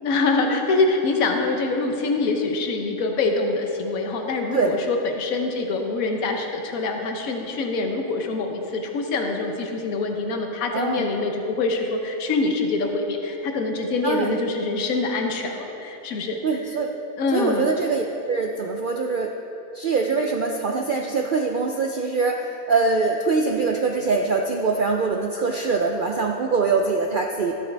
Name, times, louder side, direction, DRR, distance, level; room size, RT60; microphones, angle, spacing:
voice 1, 0.0-16.4 17.2-17.7, left 3 dB, 80° left, 4 dB, 1.3 m, -25 dB
voice 2, 10.7-11.1 14.0-14.4 16.4-16.9 17.3-19.3 19.7-27.5, right 4 dB, 70° right, 2 dB, 0.5 m, -23 dB
13.0 x 8.5 x 3.4 m, 2.9 s
omnidirectional pair, 1.5 m